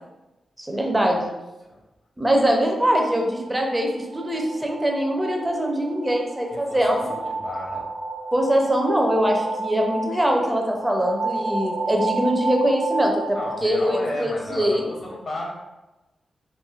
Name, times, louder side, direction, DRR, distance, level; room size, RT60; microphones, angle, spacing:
voice 1, 0.6-1.3 2.2-3.9 4.1-7.0 8.3-13.2 13.6-14.8, equal, 15° right, 1 dB, 0.5 m, -22 dB
sound 1, 3.1-14.5, right 3 dB, 80° right, 0.7 m, -32 dB
voice 2, 6.5-7.9 13.3-15.5, left 1 dB, 50° left, -2 dB, 0.6 m, -33 dB
3.0 x 2.5 x 2.3 m, 1.0 s
wide cardioid pair, 110°, 0 cm